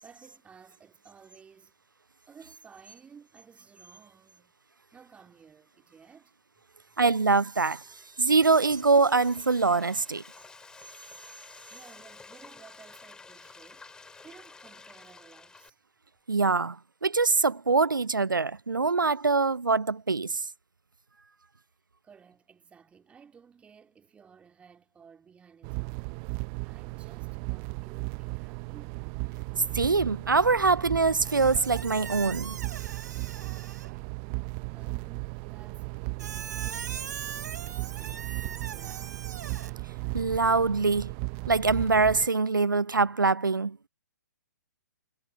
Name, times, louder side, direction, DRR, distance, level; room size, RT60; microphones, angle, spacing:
voice 1, 0.0-1.8 2.3-4.5 4.9-6.4 11.7-13.9 14.2-15.8 22.0-26.2 26.6-29.1 34.7-39.3, right 6 dB, 10° right, 4.1 m, -55 dB
voice 2, 7.0-7.8 8.2-10.2 16.3-16.8 17.0-20.4 29.7-32.6 40.1-41.1 41.5-43.8, right 4 dB, 90° right, 0.5 m, -24 dB
Frying (food), 7.8-15.7, left 4 dB, 5° left, 3.0 m, -51 dB
sound 1, 25.6-42.3, right 34 dB, 30° right, 0.7 m, -36 dB
Squeak, 31.2-34.0 36.2-39.7, right 7 dB, 65° right, 4.4 m, -40 dB
figure-of-eight pair, 125°, 10 cm